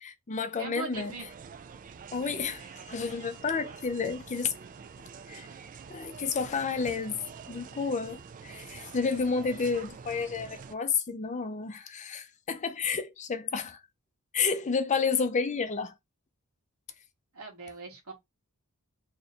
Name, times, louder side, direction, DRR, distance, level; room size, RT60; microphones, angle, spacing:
voice 1, 0.0-1.1 2.1-4.5 5.3-5.5 5.9-7.2 7.5-13.8 14.3-15.9, left 5 dB, 30° left, 0.5 m, -31 dB
voice 2, 0.6-1.3 17.3-18.1, right 3 dB, 80° right, 1.4 m, -40 dB
sound 1, 0.9-10.7, right 6 dB, 35° right, 0.3 m, -46 dB
2.9 x 2.6 x 4.2 m
head